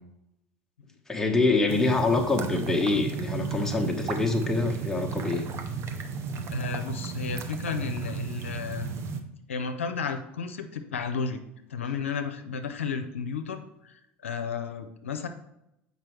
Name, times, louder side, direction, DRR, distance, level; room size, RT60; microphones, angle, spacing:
voice 1, 1.1-5.4, left 3 dB, 5° left, 1 dB, 1.1 m, -25 dB
sound 1, 1.7-9.2, right 6 dB, 45° right, 0.8 m, -34 dB
voice 2, 6.5-8.9 9.5-11.4 11.7-15.3, left 6 dB, 85° left, 6 dB, 0.5 m, -33 dB
7.4 x 5.2 x 3.2 m, 0.84 s
hypercardioid pair, 75°, 7 cm